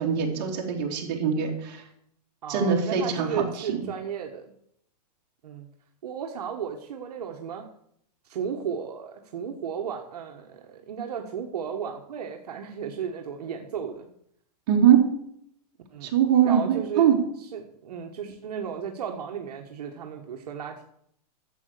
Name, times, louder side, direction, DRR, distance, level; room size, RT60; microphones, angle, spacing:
voice 1, 0.0-1.8 2.5-3.3 3.7-3.9 14.7-15.0 16.0-17.1, right 8 dB, 35° right, -1 dB, 2.9 m, -22 dB
voice 2, 2.4-4.5 5.4-5.7 6.0-7.7 8.2-14.1 15.9-17.1 17.4-20.8, right 7 dB, 65° right, 2 dB, 1.4 m, -34 dB
12.0 x 7.6 x 6.7 m, 0.71 s
hypercardioid pair, 170°, 21 cm